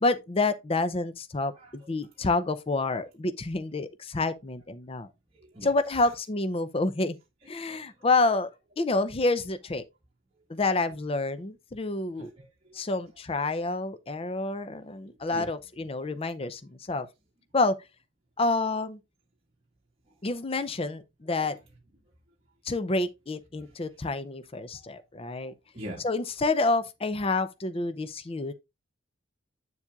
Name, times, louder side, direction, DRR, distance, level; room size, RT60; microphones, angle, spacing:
voice 1, 0.0-5.1 5.6-7.2 7.5-8.5 8.8-9.8 10.5-12.3 12.7-17.1 17.5-17.7 18.4-19.0 20.2-21.6 22.7-25.5 26.0-28.5, left 3 dB, 30° left, 0.5 m, -28 dB
voice 2, 1.5-1.9 2.2-2.3 5.3-6.1 7.7-8.1 12.2-12.9 15.0-15.5 20.1-20.2 23.6-23.8 25.7-26.1, equal, 30° right, 1.7 m, -45 dB
8.1 x 7.2 x 2.4 m
head